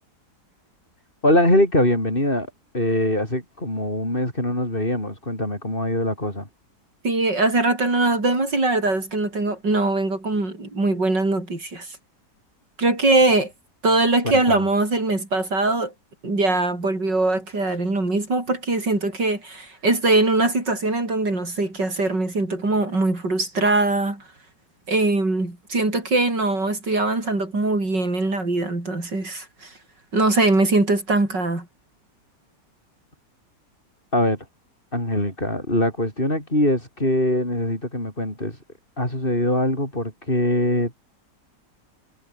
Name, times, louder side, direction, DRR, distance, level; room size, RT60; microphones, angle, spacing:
voice 1, 1.2-2.5 2.7-6.5 14.3-14.7 34.1-34.4 34.9-38.6 39.0-41.0, left 1 dB, 30° left, 8.0 m, -22 dB
voice 2, 7.0-11.9 12.8-13.5 13.8-15.9 16.2-24.2 24.9-29.7 30.1-31.7, right 2 dB, 90° right, 7.2 m, -22 dB
omnidirectional pair, 1.8 m